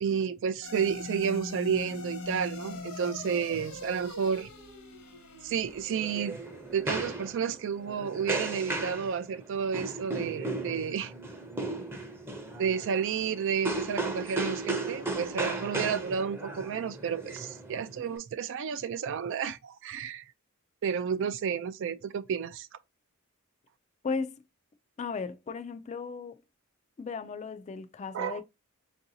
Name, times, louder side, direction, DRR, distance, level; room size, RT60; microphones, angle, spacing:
voice 1, 0.0-4.5 5.4-6.4 6.7-11.1 12.6-20.2 20.8-22.7 28.1-28.4, right 7 dB, 60° right, 0.3 m, -31 dB
sound 1, 0.6-9.1, left 3 dB, 75° left, 1.1 m, -43 dB
sound 2, 5.7-18.2, right 2 dB, 10° right, 0.6 m, -36 dB
voice 2, 24.0-24.3 25.0-26.4 27.0-28.4, left 5 dB, 30° left, 0.3 m, -35 dB
4.6 x 2.6 x 2.7 m
head